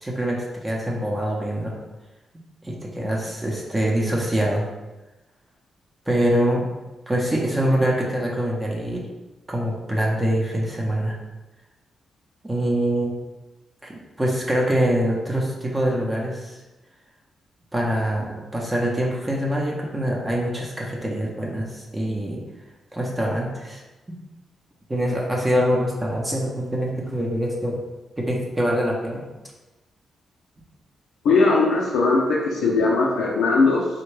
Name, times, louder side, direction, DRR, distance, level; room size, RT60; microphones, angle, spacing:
voice 1, 0.0-1.8 2.6-4.7 6.1-6.6 7.1-9.1 9.5-11.2 12.4-13.1 13.8-16.6 17.7-22.4 22.9-23.8 24.9-27.8 28.2-29.2, equal, 20° right, -2 dB, 0.6 m, -24 dB
voice 2, 31.2-33.9, left 3 dB, 85° left, -3 dB, 0.5 m, -19 dB
3.4 x 2.2 x 3.1 m, 1.1 s
cardioid pair, 75°, 0 cm